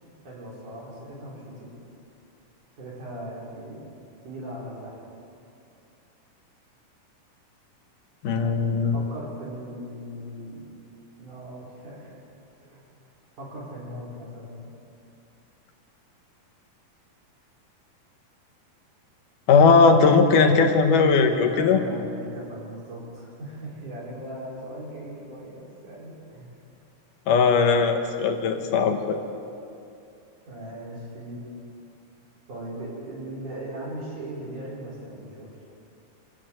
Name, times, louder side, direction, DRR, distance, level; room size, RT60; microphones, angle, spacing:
voice 1, 0.2-1.7 2.8-3.8 4.2-5.0 8.3-10.7 11.2-12.2 12.6-12.9 13.4-14.7 21.2-26.6 30.5-31.4 32.5-35.5, right 1 dB, 65° right, -5 dB, 6.2 m, -38 dB
voice 2, 8.2-9.0 19.5-21.8 27.3-29.2, left 4 dB, 70° left, 5 dB, 2.7 m, -18 dB
23.5 x 15.5 x 7.9 m, 2.6 s
omnidirectional pair, 3.9 m